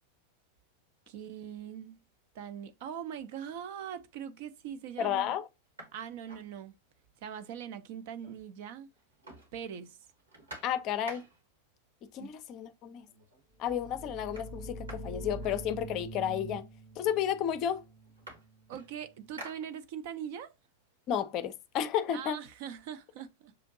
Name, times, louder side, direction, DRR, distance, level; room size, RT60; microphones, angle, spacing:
voice 1, 1.1-2.0 2.3-5.3 5.9-6.8 7.2-8.9 9.5-10.0 12.2-12.3 18.7-20.5 22.1-23.5, right 9 dB, 50° right, 0.5 m, -41 dB
sound 1, 3.9-4.1 4.6-4.7 5.0-7.1 7.4-7.5 7.8-8.6 8.9-11.6 12.6-12.7 13.1-13.5 13.8-16.2 17.0-17.1 17.4-20.2 20.7-22.4, right 2 dB, 75° right, 1.5 m, -52 dB
voice 2, 5.0-5.5 10.6-11.2 12.0-13.1 13.6-16.7 17.0-17.8 21.1-22.4, left 9 dB, 35° left, 0.5 m, -32 dB
sound 2, 13.6-19.2, right 1 dB, 15° right, 0.8 m, -45 dB
6.6 x 2.5 x 2.6 m
figure-of-eight pair, 90°, 0 cm